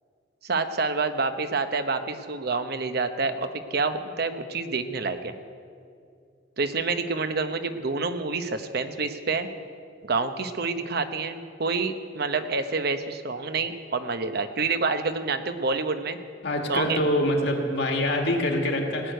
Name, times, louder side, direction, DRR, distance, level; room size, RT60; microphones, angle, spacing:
voice 1, 0.4-5.3 6.6-9.5 10.0-16.2 16.7-17.0, right 4 dB, 55° right, 9 dB, 0.8 m, -28 dB
voice 2, 16.4-19.1, left 1 dB, 65° left, 1 dB, 2.0 m, -25 dB
18.0 x 6.5 x 9.1 m, 2.3 s
head